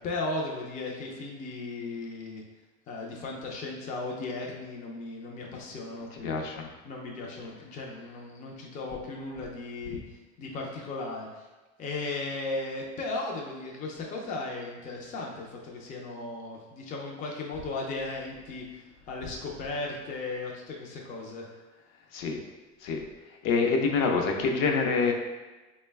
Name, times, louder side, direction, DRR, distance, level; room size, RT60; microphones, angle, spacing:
voice 1, 0.0-2.4 2.9-6.3 6.8-10.0 10.4-11.5 11.8-21.5, left 3 dB, 25° left, -1 dB, 0.3 m, -36 dB
voice 2, 6.2-6.7 22.1-22.4 22.8-23.0 23.4-25.1, left 4 dB, 65° left, 2 dB, 0.6 m, -26 dB
3.8 x 2.1 x 3.3 m, 1.2 s
cardioid pair, 150°, 34 cm